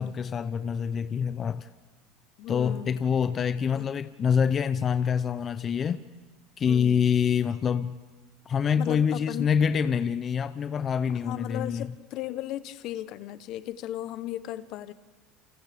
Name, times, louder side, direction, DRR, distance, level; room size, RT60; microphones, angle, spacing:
voice 1, 0.0-1.7 2.5-6.0 6.6-8.0 8.5-11.9, left 7 dB, 35° left, 12 dB, 0.6 m, -26 dB
voice 2, 2.4-3.0 3.7-3.9 6.7-7.1 8.8-9.5 11.2-14.9, left 14 dB, 60° left, 14 dB, 0.9 m, -36 dB
29.5 x 28.0 x 3.5 m, 1.3 s
supercardioid pair, 110°, 0 cm